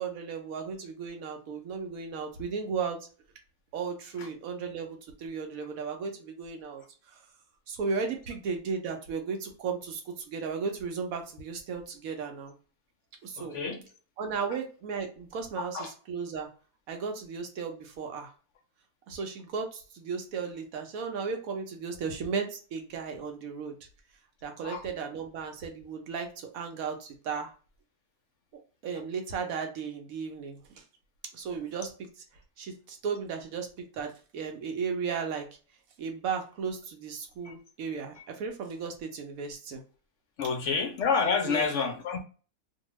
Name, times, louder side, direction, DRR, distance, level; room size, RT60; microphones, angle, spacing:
voice 1, 0.0-3.0 3.7-6.8 7.1-7.2 7.7-12.5 13.2-13.6 14.2-16.5 16.9-18.3 19.1-23.7 24.4-27.5 28.5-30.6 31.3-31.9 32.6-33.7 33.9-35.5 36.0-39.8 41.4-41.7, right 5 dB, 70° right, 4 dB, 1.0 m, -35 dB
voice 2, 13.4-13.8 15.6-15.9 24.6-24.8 37.4-37.5 38.1-38.3 40.4-42.2, left 5 dB, 65° left, 3 dB, 0.7 m, -29 dB
2.7 x 2.2 x 2.9 m, 0.38 s
omnidirectional pair, 1.6 m